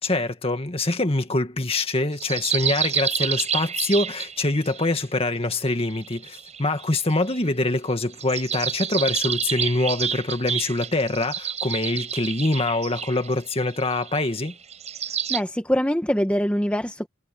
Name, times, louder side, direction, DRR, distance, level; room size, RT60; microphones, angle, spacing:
voice 1, 0.0-14.5, left 2 dB, 30° left, 2.0 m, -24 dB
sound 1, 2.2-4.9 5.7-7.4 8.1-15.4, right 8 dB, 35° right, 6.2 m, -29 dB
voice 2, 15.3-17.1, equal, 5° left, 1.3 m, -23 dB
head